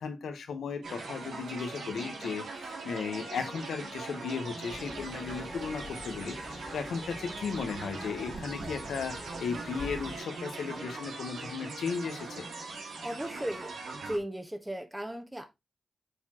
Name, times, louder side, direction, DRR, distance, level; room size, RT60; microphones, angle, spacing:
voice 1, 0.0-2.4 2.8-12.5, left 5 dB, 90° left, 1.2 m, -36 dB
sound 1, 0.8-14.2, right 3 dB, 90° right, 1.9 m, -41 dB
Windy autumn - wind, 4.7-10.2, left 2 dB, 45° left, 2.1 m, -46 dB
voice 2, 13.0-13.8 14.1-15.5, right 1 dB, 10° right, 1.3 m, -36 dB
8.1 x 4.5 x 3.0 m
cardioid pair, 55°, 0 cm